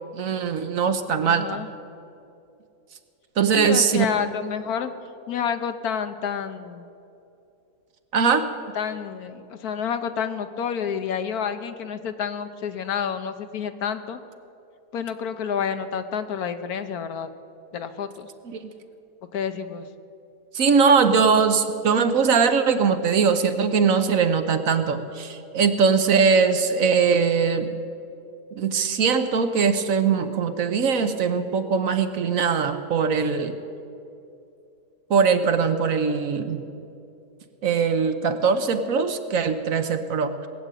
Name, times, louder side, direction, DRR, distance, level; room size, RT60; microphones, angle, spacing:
voice 1, 0.1-1.6 3.4-4.0 8.1-8.5 18.5-18.7 20.5-27.7 28.5-33.5 35.1-36.6 37.6-40.5, right 5 dB, 60° right, 8 dB, 1.2 m, -21 dB
voice 2, 1.2-1.7 3.5-4.9 5.3-6.9 8.7-14.2 14.9-17.3 17.7-18.3 19.2-19.9, left 7 dB, 75° left, 9 dB, 1.3 m, -29 dB
19.5 x 8.0 x 9.0 m, 2.6 s
omnidirectional pair, 1.7 m